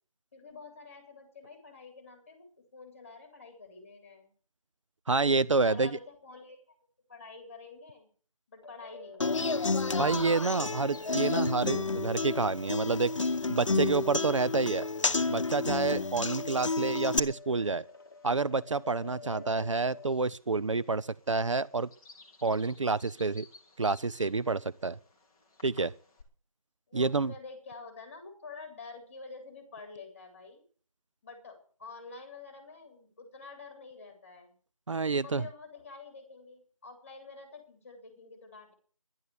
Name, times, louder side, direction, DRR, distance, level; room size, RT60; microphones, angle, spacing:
voice 1, 0.3-4.3 5.6-6.8 7.1-8.1 8.5-9.7 19.2-19.8 26.9-30.6 31.2-34.5 35.1-38.7, left 4 dB, 25° left, 3.6 m, -48 dB
voice 2, 5.1-5.9 10.0-13.1 13.5-14.9 15.3-17.8 18.2-21.9 22.4-23.5 23.8-25.0 25.6-25.9 26.9-27.3 34.9-35.4, right 3 dB, 60° right, 0.6 m, -28 dB
sound 1, 8.6-20.1, left 3 dB, 45° left, 1.2 m, -48 dB
Human voice / Acoustic guitar, 9.2-17.2, left 3 dB, 60° left, 0.9 m, -31 dB
Bird vocalization bird call bird song, 9.2-26.2, left 3 dB, 5° left, 1.0 m, -59 dB
11.0 x 10.0 x 8.4 m
figure-of-eight pair, 175°, 18 cm